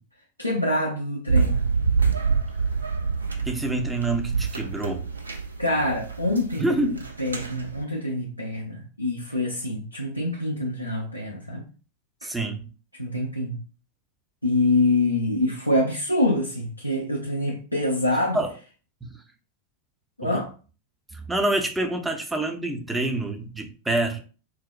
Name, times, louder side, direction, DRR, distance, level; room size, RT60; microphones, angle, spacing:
voice 1, 0.4-1.7 5.6-11.7 12.9-13.6 14.4-18.4 20.2-20.5, left 2 dB, 90° left, 0.5 m, -25 dB
sound 1, 1.3-7.8, right 5 dB, 75° right, 0.4 m, -26 dB
voice 2, 3.4-5.1 6.6-7.0 12.2-12.6 18.3-18.5 19.0-19.2 20.2-20.4 21.1-24.2, right 2 dB, 10° right, 0.5 m, -27 dB
3.9 x 2.1 x 2.4 m
figure-of-eight pair, 90°, 0 cm